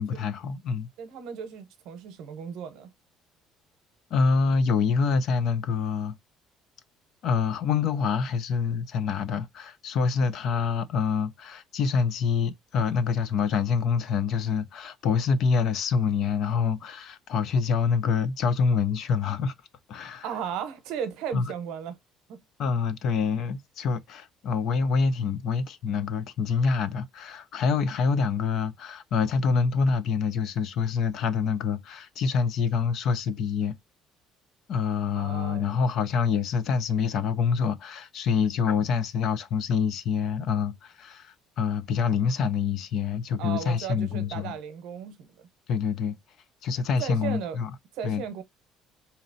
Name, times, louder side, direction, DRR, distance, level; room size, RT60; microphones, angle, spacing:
voice 1, 0.0-0.9 4.1-6.2 7.2-19.5 19.9-20.3 21.3-21.4 22.6-33.7 34.7-44.6 45.7-46.2 46.6-47.7 48.0-48.2, left 5 dB, 45° left, 0.4 m, -26 dB
voice 2, 1.0-2.9 20.2-22.0 22.3-22.4 35.2-35.6 43.4-45.5 47.0-47.6 47.9-48.4, right 8 dB, 75° right, 0.8 m, -35 dB
4.0 x 2.8 x 2.6 m
cardioid pair, 175°, 0 cm